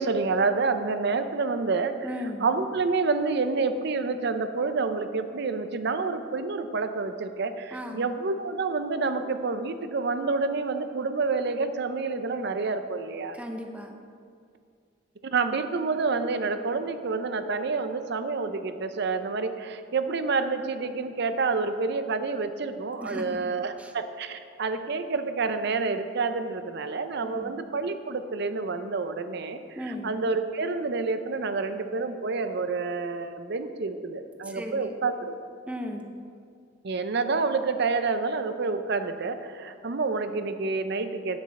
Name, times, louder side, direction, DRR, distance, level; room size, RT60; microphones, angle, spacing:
voice 1, 0.0-2.1 2.4-13.4 15.2-29.6 30.0-35.5 36.8-41.4, right 4 dB, 60° right, 9 dB, 0.6 m, -28 dB
voice 2, 2.0-2.4 7.7-8.1 13.3-13.9 23.0-23.2 23.8-23.9 27.2-27.5 29.7-30.1 34.4-34.9 35.7-36.0, equal, 5° right, 3 dB, 0.8 m, -36 dB
9.9 x 9.6 x 4.2 m, 2.2 s
head